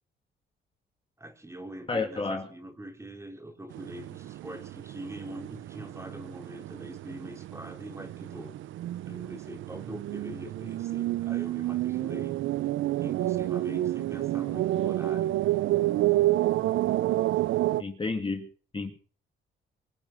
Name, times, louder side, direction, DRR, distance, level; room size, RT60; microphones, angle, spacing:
voice 1, 1.2-8.6 9.1-12.4 13.0-15.3, right 1 dB, 15° right, 4.0 m, -43 dB
voice 2, 1.9-2.5 17.8-19.0, left 3 dB, 25° left, 2.5 m, -31 dB
sound 1, 3.7-17.8, right 15 dB, 75° right, 0.7 m, -29 dB
25.0 x 9.0 x 6.2 m
cardioid pair, 90°, 20 cm